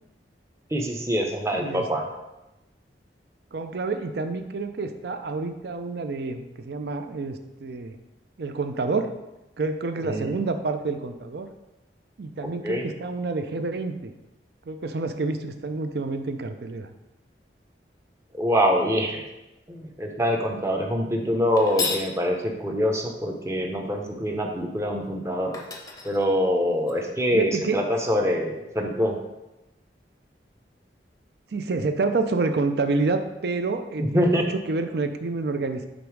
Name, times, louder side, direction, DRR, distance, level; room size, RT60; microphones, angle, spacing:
voice 1, 0.7-2.1 10.0-10.3 12.4-12.9 18.3-19.2 19.7-25.6 26.0-29.2 34.0-34.4, equal, 15° right, 2 dB, 0.7 m, -25 dB
voice 2, 1.5-1.8 3.5-8.0 8.4-9.1 9.6-11.5 12.2-14.1 14.7-16.9 27.3-27.8 31.5-35.9, right 3 dB, 60° right, 8 dB, 0.5 m, -28 dB
sound 1, 21.6-22.1 25.0-25.1 25.5-26.9, left 4 dB, 20° left, 0.6 m, -32 dB
5.2 x 3.9 x 4.7 m, 0.95 s
head